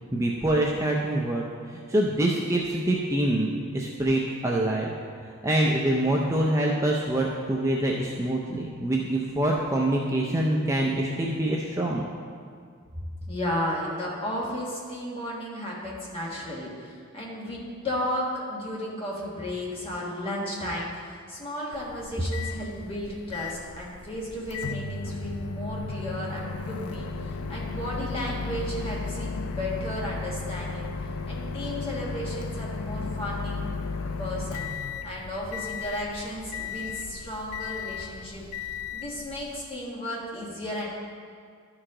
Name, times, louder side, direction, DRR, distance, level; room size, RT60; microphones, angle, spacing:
voice 1, 0.1-4.9 5.4-12.1, right 1 dB, 15° right, -2 dB, 0.5 m, -25 dB
voice 2, 13.3-26.4 26.7-30.9 31.3-33.6 34.2-34.6 35.0-38.5 38.9-40.9, left 1 dB, 25° left, -4 dB, 1.5 m, -34 dB
Microwave oven, 21.7-39.7, left 4 dB, 80° left, 0.4 m, -35 dB
12.0 x 4.7 x 3.7 m, 2.1 s
head